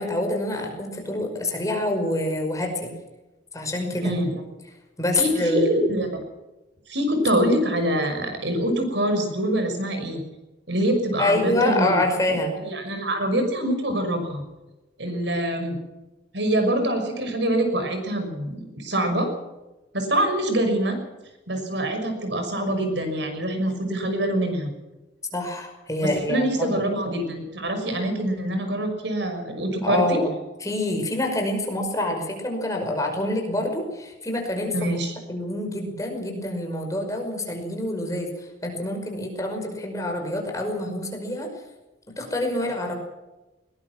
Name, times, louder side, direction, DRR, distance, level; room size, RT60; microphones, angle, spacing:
voice 1, 0.0-2.9 3.5-4.1 5.0-5.8 11.2-12.5 25.3-26.7 29.8-30.3 30.6-34.9 35.3-41.5 42.2-43.0, left 1 dB, 20° left, 2 dB, 5.5 m, -26 dB
voice 2, 4.0-4.4 5.2-6.1 6.9-10.2 10.7-12.0 12.6-14.4 15.0-15.8 16.3-19.3 19.9-21.0 21.5-24.7 26.0-30.2 34.7-35.1, right 1 dB, 75° right, 6 dB, 5.9 m, -25 dB
21.0 x 20.5 x 6.1 m, 1.0 s
head